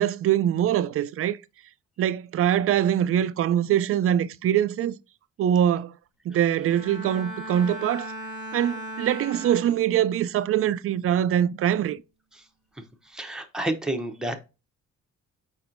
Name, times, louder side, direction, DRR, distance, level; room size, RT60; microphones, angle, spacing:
voice 1, 0.0-1.4 2.0-4.9 5.4-5.9 6.3-8.1 8.5-12.0, right 10 dB, 50° right, 0.4 m, -23 dB
Bowed string instrument, 6.6-10.2 10.6-11.0, right 1 dB, 90° left, 2.4 m, -38 dB
voice 2, 13.0-14.4, right 1 dB, ahead, 0.8 m, -30 dB
4.8 x 4.3 x 2.5 m
cardioid pair, 90°, 30 cm